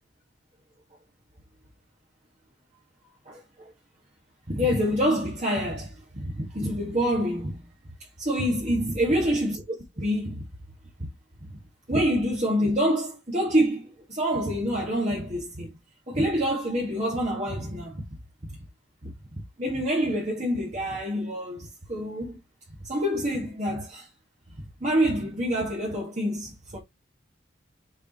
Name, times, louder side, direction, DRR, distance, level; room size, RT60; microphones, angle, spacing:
voice 1, 3.3-3.7 4.5-7.7 8.2-10.4 11.5-11.6 11.9-15.7 16.1-18.0 18.4-18.6 19.0-19.1 19.6-22.4 22.8-24.1 24.8-26.8, equal, 35° right, 1.8 m, -27 dB
6.6 x 4.8 x 3.0 m
head